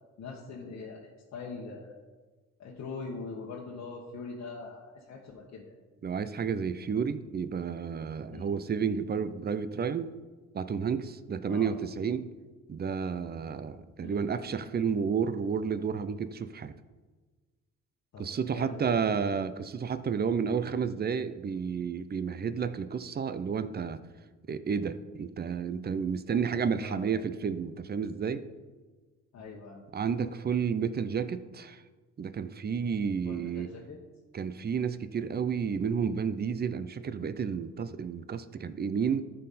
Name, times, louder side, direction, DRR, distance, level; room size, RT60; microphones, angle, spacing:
voice 1, 0.2-2.0 2.6-5.8 8.3-8.5 11.5-11.7 14.0-14.3 18.1-19.1 26.8-27.1 29.3-29.8 33.2-34.0, left 4 dB, 60° left, -3 dB, 1.2 m, -42 dB
voice 2, 6.0-10.1 10.5-12.3 12.7-16.7 18.2-24.0 24.5-28.4 29.9-31.8 32.2-33.7 34.3-39.2, right 6 dB, 35° right, 12 dB, 0.6 m, -31 dB
13.0 x 4.5 x 4.2 m, 1.3 s
cardioid pair, 90°, 30 cm